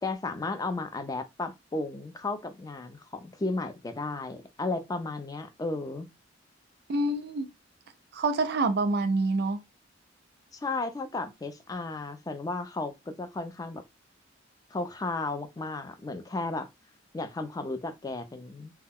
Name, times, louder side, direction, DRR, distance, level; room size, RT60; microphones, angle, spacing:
voice 1, 0.0-6.1 10.5-13.8 14.7-16.7 17.1-18.7, left 3 dB, 20° left, 0.3 m, -34 dB
voice 2, 6.9-7.5 8.1-9.6, right 2 dB, 60° right, 0.5 m, -26 dB
2.2 x 2.1 x 3.4 m
head